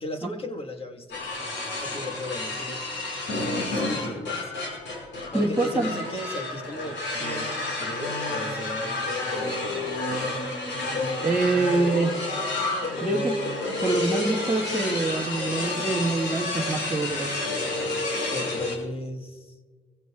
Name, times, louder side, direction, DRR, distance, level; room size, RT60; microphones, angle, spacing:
voice 1, 0.0-1.2 1.8-2.8 3.6-4.5 5.3-10.0 18.3-19.5, left 1 dB, 30° left, 5 dB, 1.6 m, -36 dB
sound 1, 1.1-18.7, left 2 dB, 65° left, 5.4 m, -30 dB
voice 2, 5.3-5.9 11.2-12.2 13.0-13.4 13.7-17.3, right 3 dB, 5° right, -5 dB, 1.9 m, -25 dB
24.0 x 15.5 x 2.4 m, 1.4 s
cardioid pair, 90°, 20 cm